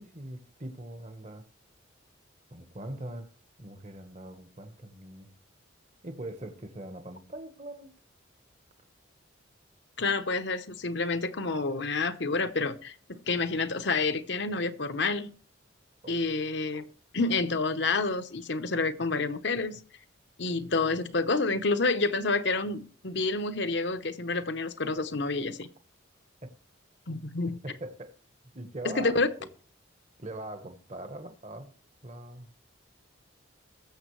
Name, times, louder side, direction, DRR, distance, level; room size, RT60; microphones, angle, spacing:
voice 1, 0.0-1.4 2.5-3.3 3.6-5.3 6.0-7.9 16.0-16.2 26.4-26.5 27.6-28.1 28.5-29.5 30.2-31.7 32.0-32.5, right 1 dB, 35° right, 1.2 m, -42 dB
voice 2, 10.0-15.3 16.1-16.8 17.1-19.8 20.4-25.7 27.1-27.6 28.8-29.3, left 3 dB, 60° left, 0.9 m, -29 dB
20.5 x 7.3 x 3.2 m
head